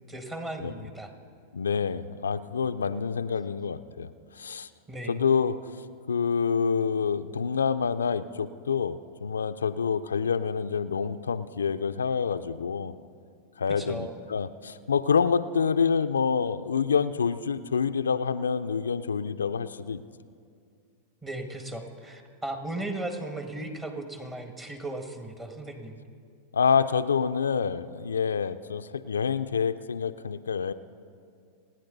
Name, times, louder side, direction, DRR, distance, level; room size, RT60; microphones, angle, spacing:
voice 1, 0.1-1.1 4.9-5.2 13.8-14.2 21.2-26.0, right 2 dB, 20° right, 5 dB, 1.7 m, -36 dB
voice 2, 1.5-4.7 5.1-5.6 6.1-13.0 13.6-20.0 26.5-30.7, left 6 dB, 85° left, 11 dB, 0.4 m, -27 dB
29.0 x 9.8 x 4.0 m, 2.3 s
hypercardioid pair, 95°, 0 cm